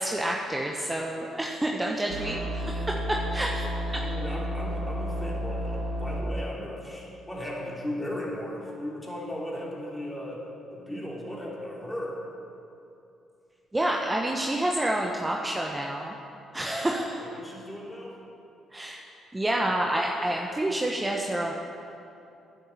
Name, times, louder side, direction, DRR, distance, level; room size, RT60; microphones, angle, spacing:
voice 1, 0.0-3.6 3.9-4.1 13.7-16.2 16.5-17.2 18.7-19.0 19.3-21.5, right 1 dB, 15° right, 0 dB, 1.0 m, -28 dB
sound 1, 2.1-6.2, equal, 90° right, 1.4 m, -31 dB
voice 2, 3.9-10.5 10.7-12.2 16.6-16.9 17.2-18.2 19.5-19.8, left 1 dB, 10° left, -3 dB, 3.1 m, -37 dB
9.7 x 7.2 x 7.2 m, 2.7 s
hypercardioid pair, 50°, 0 cm